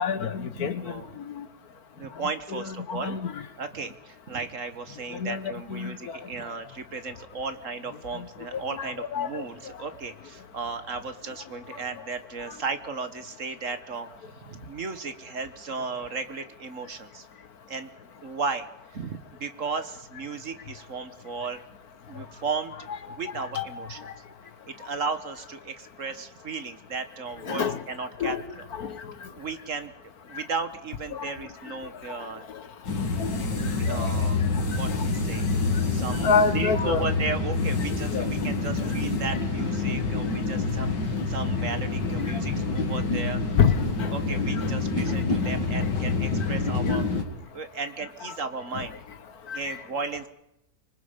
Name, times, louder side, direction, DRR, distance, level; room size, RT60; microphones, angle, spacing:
voice 1, 0.0-1.5 2.5-3.4 5.1-6.3 8.1-8.3 8.5-9.4 12.5-12.6 23.5-24.1 27.4-27.8 28.2-28.4 28.7-29.3 30.3-30.4 31.1-31.3 31.6-31.7 32.1-32.6 33.0-34.2 34.5-34.6 34.9-35.1 36.2-37.0 38.1-38.3 38.8-38.9 42.3-42.4 43.6-44.1 44.5-44.7 45.1-45.5 45.8-45.9 46.9-47.0 49.5-49.8, left 6 dB, 65° left, 13 dB, 1.5 m, -29 dB
voice 2, 0.5-1.1 2.0-3.2 3.6-17.3 17.7-17.9 18.2-21.6 22.1-24.1 24.7-28.7 29.1-32.4 33.6-34.4 34.7-35.5 35.9-43.4 44.1-47.2 47.5-49.0 49.5-50.3, right 4 dB, 50° right, 10 dB, 1.6 m, -35 dB
sound 1, 32.8-47.2, left 3 dB, 80° left, 2.7 m, -27 dB
25.5 x 24.0 x 5.2 m, 0.85 s
omnidirectional pair, 1.8 m